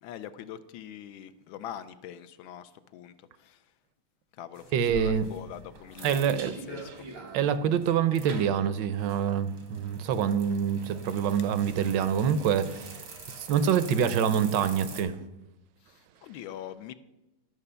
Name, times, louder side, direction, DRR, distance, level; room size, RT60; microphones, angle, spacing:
voice 1, 0.0-3.1 3.4-3.6 4.4-4.6 4.9-6.4 6.7-6.9 15.9-17.0, left 10 dB, 80° left, 12 dB, 1.3 m, -43 dB
sound 1, 4.5-15.0, right 4 dB, 90° right, 2.4 m, -45 dB
voice 2, 4.7-5.3 6.0-6.5 7.3-13.0 13.4-15.2, right 8 dB, 70° right, 13 dB, 1.2 m, -26 dB
11.0 x 5.9 x 6.7 m, 0.97 s
omnidirectional pair, 2.2 m